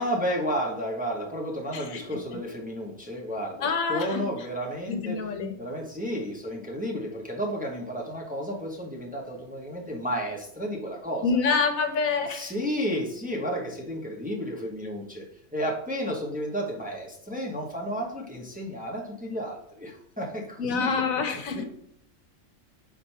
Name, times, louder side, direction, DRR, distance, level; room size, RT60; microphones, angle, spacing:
voice 1, 0.0-5.3 5.6-11.2 12.3-15.2 15.5-21.0 21.6-21.7, equal, 5° right, -1 dB, 1.0 m, -32 dB
voice 2, 3.6-4.2 4.9-5.5 11.2-12.5 20.6-21.6, left 5 dB, 80° left, 7 dB, 1.3 m, -26 dB
5.1 x 4.5 x 5.7 m, 0.68 s
omnidirectional pair, 1.4 m